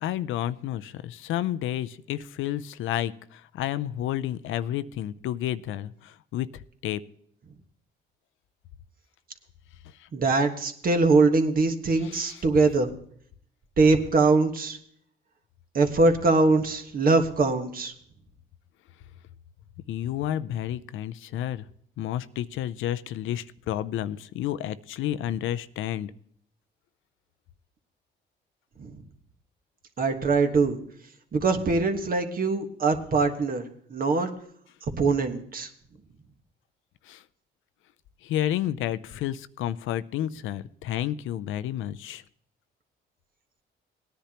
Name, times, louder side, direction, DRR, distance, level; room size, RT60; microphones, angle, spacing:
voice 1, 0.0-7.0 9.8-10.1 12.0-12.4 19.9-21.7 22.0-26.1 37.0-37.2 38.2-42.2, left 12 dB, 80° left, 14 dB, 0.5 m, -31 dB
voice 2, 10.1-12.9 13.8-14.8 15.7-17.9 28.8-29.0 30.0-30.8 31.3-34.3 35.0-35.7, right 3 dB, 45° right, 6 dB, 1.4 m, -22 dB
18.0 x 10.0 x 2.9 m, 0.64 s
cardioid pair, 90°, 20 cm